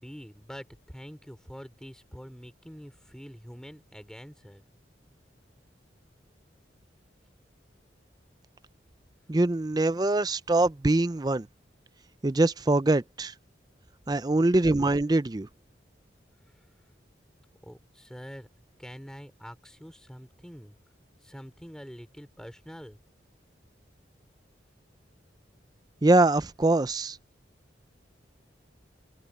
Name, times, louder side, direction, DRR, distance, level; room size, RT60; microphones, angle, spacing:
voice 1, 0.0-4.6 17.6-18.5 18.8-20.7 21.2-23.0, equal, 5° left, 3.3 m, -45 dB
voice 2, 9.3-11.5 12.2-13.3 14.1-15.5 26.0-27.2, right 2 dB, 20° right, 0.5 m, -23 dB
head